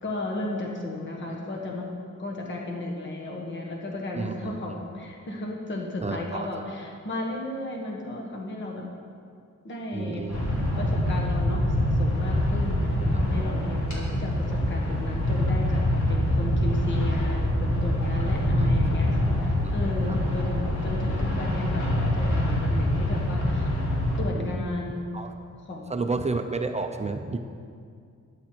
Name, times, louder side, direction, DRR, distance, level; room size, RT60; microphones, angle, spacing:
voice 1, 0.0-1.9 2.2-8.9 9.6-10.2 10.8-23.7 24.2-25.1 25.6-26.1, left 2 dB, 40° left, -1 dB, 1.4 m, -34 dB
voice 2, 4.1-4.6 6.0-6.5 9.9-10.7 13.1-13.2 18.6-18.7 19.6-19.7 20.1-20.2 24.3-24.6 25.1-25.3 25.9-27.4, right 3 dB, 25° right, 6 dB, 0.5 m, -31 dB
sound 1, 10.3-24.2, left 1 dB, 75° left, 3.3 m, -25 dB
13.5 x 10.5 x 4.5 m, 2.3 s
wide cardioid pair, 170°, 30 cm